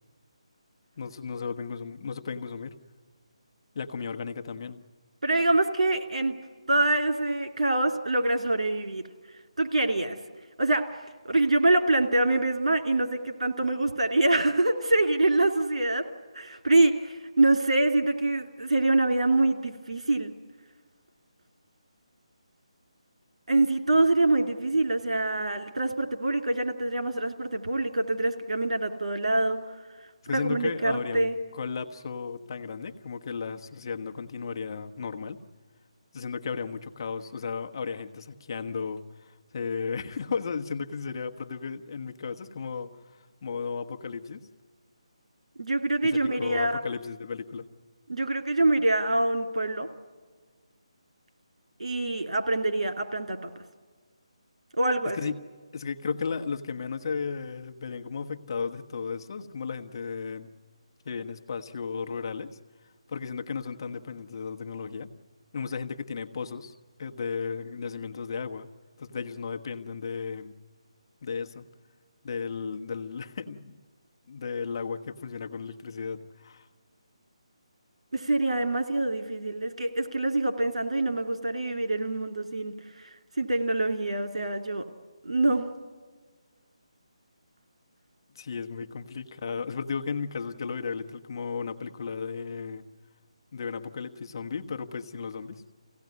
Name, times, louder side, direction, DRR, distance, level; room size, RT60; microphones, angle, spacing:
voice 1, 1.0-2.8 3.7-4.8 30.2-35.4 36.1-44.5 46.0-47.7 55.1-55.4 55.7-60.5 61.0-62.6 63.1-65.1 65.5-66.7 67.0-68.7 69.0-70.5 71.2-71.6 72.2-73.8 74.3-76.7 88.3-92.8 93.5-95.6, left 5 dB, 40° left, 6 dB, 1.2 m, -34 dB
voice 2, 5.2-6.4 6.7-9.0 9.6-10.2 10.6-16.1 16.3-20.3 23.5-29.6 30.3-31.4 45.6-46.8 48.1-49.9 51.8-53.5 54.8-55.3 78.1-82.7 83.4-84.8 85.2-85.7, right 2 dB, 80° right, 5 dB, 2.6 m, -25 dB
24.5 x 17.0 x 9.5 m, 1.5 s
figure-of-eight pair, 165°, 3 cm